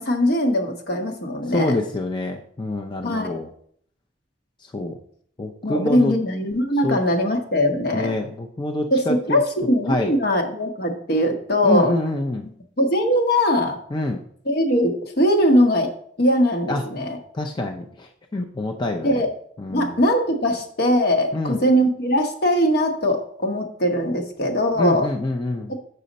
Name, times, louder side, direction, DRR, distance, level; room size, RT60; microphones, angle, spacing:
voice 1, 0.0-1.8 3.0-3.4 5.6-8.2 8.9-11.9 12.8-13.8 14.5-15.9 16.2-17.2 19.0-19.3 19.7-25.1 25.7-25.8, equal, 60° left, 4 dB, 1.2 m, -21 dB
voice 2, 1.5-3.5 4.7-5.0 5.4-6.1 6.8-7.0 7.9-9.4 9.9-10.1 11.6-12.5 13.9-14.2 16.7-16.8 17.3-19.2 19.6-20.0 21.3-21.6 24.8-25.7, left 2 dB, 25° left, 3 dB, 0.5 m, -26 dB
6.6 x 6.3 x 4.1 m, 0.63 s
head